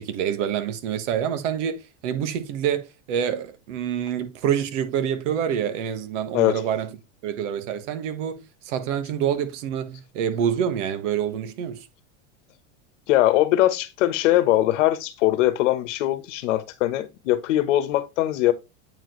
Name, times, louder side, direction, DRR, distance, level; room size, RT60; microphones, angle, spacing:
voice 1, 0.0-6.9 7.2-11.9, right 9 dB, 70° right, 1.6 m, -27 dB
voice 2, 6.3-6.6 13.1-18.5, left 14 dB, 70° left, 1.3 m, -21 dB
8.7 x 4.7 x 3.2 m
supercardioid pair, 145°, 38 cm